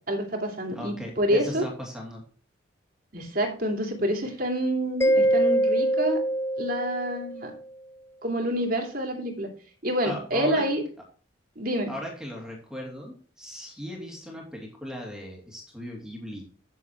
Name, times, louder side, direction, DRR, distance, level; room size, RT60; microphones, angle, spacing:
voice 1, 0.1-1.6 3.1-6.2 6.6-7.5 8.2-9.5 9.8-10.8 11.6-11.9, right 1 dB, 45° right, 2 dB, 2.7 m, -27 dB
voice 2, 0.7-2.2 10.0-10.6 11.9-16.4, equal, 5° right, -1 dB, 2.6 m, -38 dB
Mallet percussion, 5.0-7.5, right 1 dB, 10° left, 0.3 m, -24 dB
9.7 x 7.0 x 4.6 m, 0.41 s
head